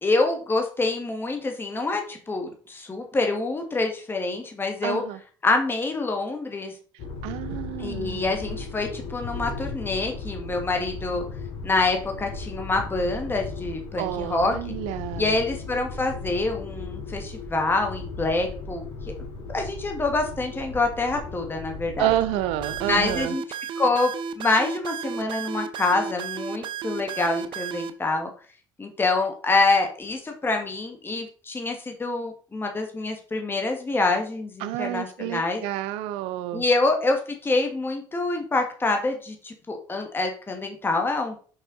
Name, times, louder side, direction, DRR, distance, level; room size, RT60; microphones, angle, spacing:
voice 1, 0.0-5.0 5.4-6.7 7.8-11.2 11.6-14.7 15.2-18.9 19.5-22.1 22.9-23.4 23.8-24.1 24.4-28.3 28.8-35.6 36.5-41.3, left 3 dB, 25° left, 1.6 m, -26 dB
voice 2, 4.8-5.2 7.2-8.3 14.0-15.3 22.0-23.3 34.6-36.6, right 14 dB, 80° right, 0.5 m, -29 dB
sound 1, 7.0-23.2, left 3 dB, 75° left, 2.4 m, -36 dB
sound 2, 22.6-27.9, right 7 dB, 60° right, 0.8 m, -33 dB
5.9 x 5.4 x 3.9 m
supercardioid pair, 75°, 10 cm